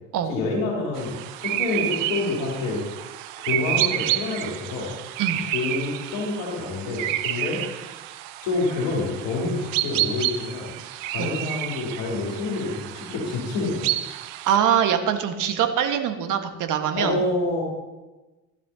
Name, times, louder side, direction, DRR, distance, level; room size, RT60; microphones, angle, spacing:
voice 1, 0.3-1.1 1.4-2.8 3.4-4.9 5.5-7.6 8.4-10.7 11.0-13.9 16.9-17.6, left 3 dB, 60° left, -3 dB, 3.4 m, -27 dB
sound 1, 1.0-14.6, right 14 dB, 65° right, 0.8 m, -30 dB
voice 2, 14.4-17.2, right 9 dB, 45° right, 7 dB, 1.5 m, -23 dB
15.0 x 11.5 x 2.8 m, 1.1 s
hypercardioid pair, 65°, 41 cm